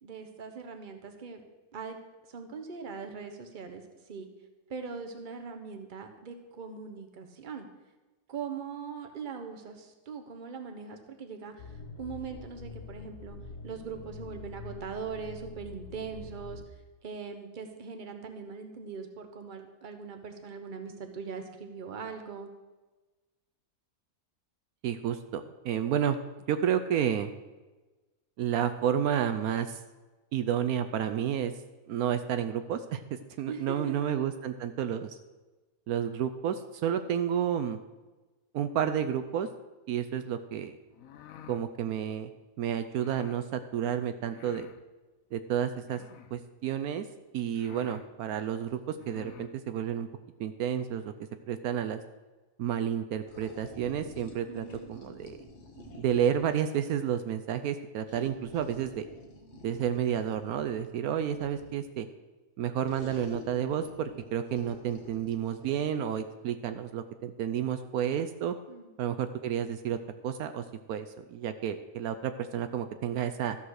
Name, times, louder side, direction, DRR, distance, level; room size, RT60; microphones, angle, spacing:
voice 1, 0.0-1.4 1.7-2.0 2.3-3.8 4.1-4.3 4.7-7.7 8.3-13.4 13.6-16.6 17.0-22.5 33.5-33.9 54.5-54.9 68.7-68.9, right 5 dB, 35° right, 5 dB, 1.1 m, -41 dB
sound 1, 11.6-16.7, left 4 dB, 85° left, 1.6 m, -45 dB
voice 2, 24.8-26.2 26.5-27.3 28.4-29.8 30.3-31.5 31.9-33.0 33.4-35.2 35.9-37.8 38.5-39.5 39.9-40.7 41.5-42.3 42.6-44.7 45.3-46.0 46.3-47.0 47.3-50.1 50.4-51.1 51.5-52.0 52.6-55.4 56.0-59.1 59.6-62.1 62.6-68.6 69.0-70.0 70.2-73.6, right 9 dB, 75° right, 9 dB, 1.1 m, -31 dB
sound 2, 40.9-41.7 42.9-43.4 44.3-44.8 45.8-46.4 47.1-47.2 47.5-48.1 48.9-49.5, left 9 dB, 70° left, 1.0 m, -50 dB
sound 3, 53.3-56.6 58.1-61.9 62.8-65.8, left 2 dB, 50° left, 1.7 m, -49 dB
13.5 x 5.6 x 6.4 m, 1.2 s
omnidirectional pair, 1.6 m